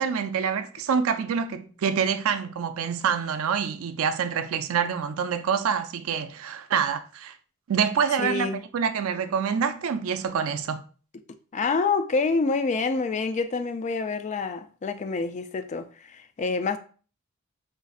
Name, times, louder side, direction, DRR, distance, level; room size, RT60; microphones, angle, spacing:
voice 1, 0.0-7.4 7.7-10.8, right 7 dB, 75° right, 0.4 m, -26 dB
voice 2, 8.2-8.6 11.5-16.8, left 4 dB, 35° left, 0.3 m, -27 dB
5.2 x 2.5 x 2.4 m
head